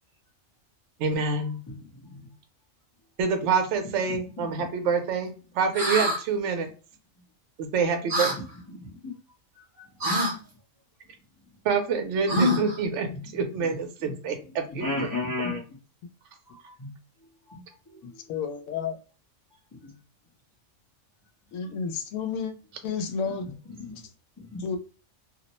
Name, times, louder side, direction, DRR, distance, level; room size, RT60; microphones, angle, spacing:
voice 1, 1.0-1.6 3.2-6.7 7.6-8.3 11.6-13.1 13.3-15.1, right 5 dB, 70° right, 0.8 m, -27 dB
voice 2, 1.7-2.3 4.1-4.7 8.7-9.0 9.5-9.9 10.3-10.4 12.4-12.7 13.1-13.2 14.0-14.1 14.7-15.6 16.5-16.9 17.5-17.6 17.9-18.2 19.8-19.9 23.2-23.5 23.8-24.0 24.4-24.7, left 2 dB, 25° left, 0.4 m, -35 dB
sound 1, 5.7-6.2 8.1-8.4 10.0-10.3 12.3-12.8, left 1 dB, 35° right, 0.6 m, -25 dB
voice 3, 18.3-19.0 21.5-22.5 22.8-23.5 23.9-24.0 24.6-24.8, left 6 dB, 85° left, 1.0 m, -31 dB
2.5 x 2.0 x 2.8 m
omnidirectional pair, 1.4 m